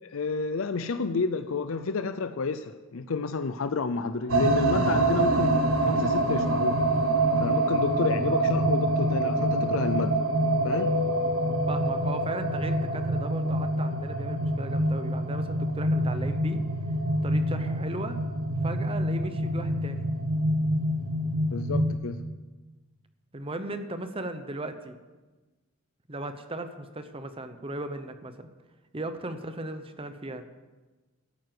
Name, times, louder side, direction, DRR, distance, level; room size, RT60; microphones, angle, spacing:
voice 1, 0.0-5.5 5.8-6.8 7.4-10.2 10.6-10.9 21.5-22.2, left 4 dB, 75° left, 10 dB, 0.6 m, -30 dB
sound 1, 4.3-21.9, right 1 dB, 90° right, 1.5 m, -26 dB
Keyboard (musical), 10.7-13.3, left 5 dB, 45° left, 4.0 m, -34 dB
voice 2, 11.7-16.6 17.2-18.2 18.6-20.1 23.3-25.0 26.1-28.5 28.9-30.4, right 2 dB, 25° right, 9 dB, 0.9 m, -37 dB
12.5 x 9.5 x 7.7 m, 1.2 s
head